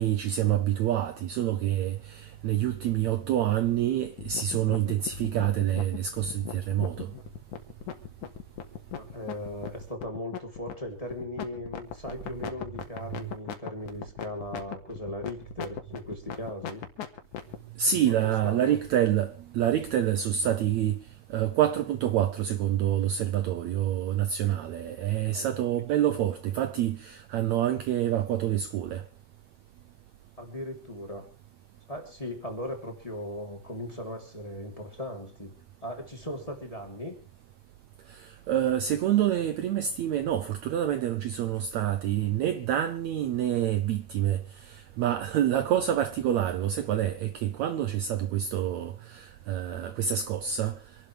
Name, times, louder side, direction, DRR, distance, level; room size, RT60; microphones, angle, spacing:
voice 1, 0.0-7.1 17.8-21.0 21.3-29.0 38.1-50.8, right 11 dB, 70° right, 1.9 m, -27 dB
sound 1, 4.2-17.6, left 9 dB, 65° left, 3.0 m, -38 dB
voice 2, 8.9-16.9 17.9-18.8 25.3-25.5 30.4-31.3 31.9-35.5 35.8-37.2, left 1 dB, 10° left, 3.2 m, -38 dB
26.5 x 12.0 x 3.4 m
omnidirectional pair, 3.8 m